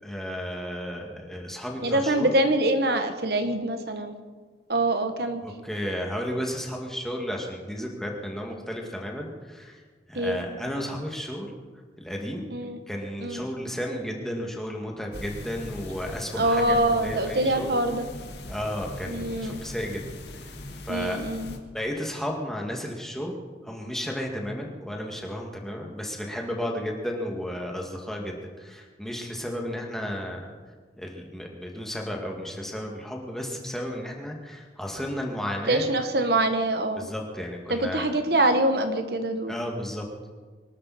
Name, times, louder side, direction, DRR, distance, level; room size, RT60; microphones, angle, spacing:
voice 1, 0.0-2.3 5.4-9.8 10.1-11.5 12.0-12.5 12.9-17.7 18.5-20.0 20.3-20.5 20.9-21.2 21.7-23.4 23.6-30.5 31.0-35.9 37.0-38.1 39.5-40.1, equal, ahead, 0 dB, 2.2 m, -33 dB
voice 2, 1.8-4.2 4.7-5.4 10.1-10.4 12.5-12.8 13.2-13.5 16.3-18.1 19.1-19.6 20.9-21.6 35.7-37.1 37.7-39.5, right 1 dB, 65° right, 7 dB, 1.2 m, -24 dB
sound 1, 15.1-21.6, left 1 dB, 75° left, 1.8 m, -40 dB
24.0 x 13.0 x 4.3 m, 1.4 s
head